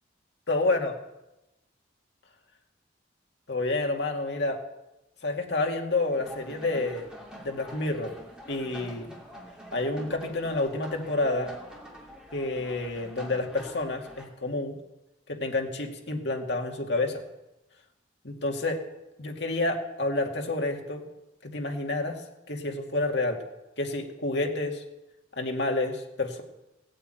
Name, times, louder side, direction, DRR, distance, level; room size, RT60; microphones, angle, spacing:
voice 1, 0.5-1.0 3.5-4.6 5.2-7.1 7.4-8.1 8.5-9.1 9.7-11.5 12.3-14.8 15.3-17.2 18.2-18.8 19.2-21.0 21.4-22.2 22.5-23.4 23.8-24.8 25.4-26.4, left 2 dB, 60° left, 2 dB, 2.3 m, -29 dB
sound 1, 6.1-14.3, equal, 5° right, 2.7 m, -46 dB
17.5 x 8.9 x 9.3 m, 0.94 s
head